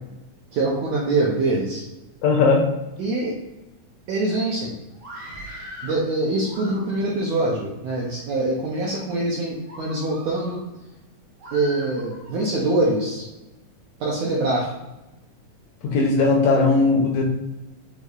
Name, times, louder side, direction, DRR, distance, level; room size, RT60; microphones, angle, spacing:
voice 1, 0.5-1.8 3.0-3.4 4.1-4.7 5.8-10.6 11.5-13.3 14.0-14.7, right 2 dB, 80° right, -4 dB, 1.5 m, -24 dB
voice 2, 2.2-2.6 15.8-17.2, left 3 dB, 75° left, 0 dB, 1.7 m, -18 dB
Screaming, 4.9-6.0 6.4-7.2 7.8-8.4 8.9-9.1 9.6-10.6 11.4-12.4, equal, 60° right, 1.1 m, -41 dB
6.4 x 2.7 x 2.4 m, 1.0 s
omnidirectional pair, 3.7 m